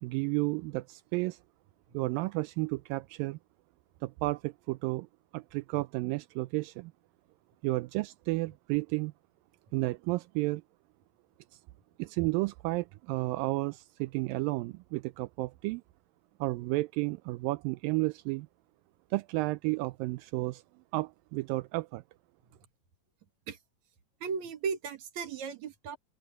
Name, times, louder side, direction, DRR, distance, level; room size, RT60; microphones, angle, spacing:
voice 1, 0.0-1.4 1.9-3.4 4.0-5.1 5.3-6.9 7.6-9.1 9.7-10.6 11.5-11.6 12.0-15.8 16.4-18.5 19.1-20.6 20.9-22.0, right 22 dB, 80° right, 2.1 m, -32 dB
voice 2, 24.2-26.0, right 6 dB, 55° right, 2.9 m, -36 dB
open air
omnidirectional pair, 4.4 m